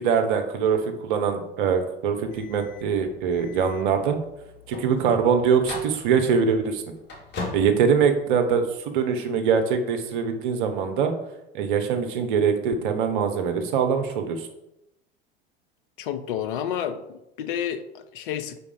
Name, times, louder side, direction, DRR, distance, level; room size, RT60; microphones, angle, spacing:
voice 1, 0.0-4.2 4.7-6.8 7.5-11.1 11.5-14.5, right 6 dB, 60° right, 6 dB, 0.9 m, -23 dB
sound 1, 2.2-8.8, left 3 dB, 35° left, 1.9 m, -40 dB
voice 2, 16.0-18.6, left 9 dB, 60° left, 9 dB, 0.7 m, -30 dB
5.1 x 4.3 x 5.0 m, 0.88 s
figure-of-eight pair, 75°, 29 cm